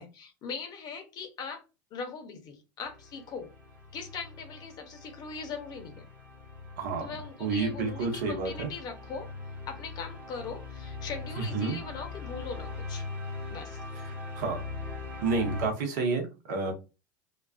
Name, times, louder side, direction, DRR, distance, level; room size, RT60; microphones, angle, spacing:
voice 1, 0.0-1.6 1.9-3.5 3.9-6.1 7.0-9.3 9.7-13.1 13.5-13.8, left 5 dB, 40° left, 6 dB, 0.6 m, -40 dB
sound 1, 2.9-15.7, left 3 dB, 15° right, 1.1 m, -41 dB
voice 2, 6.8-7.1 7.4-8.7 11.4-11.8 14.3-14.6 15.2-16.7, right 4 dB, 70° right, 3 dB, 0.9 m, -30 dB
2.3 x 2.3 x 2.3 m, 0.29 s
hypercardioid pair, 100°, 10 cm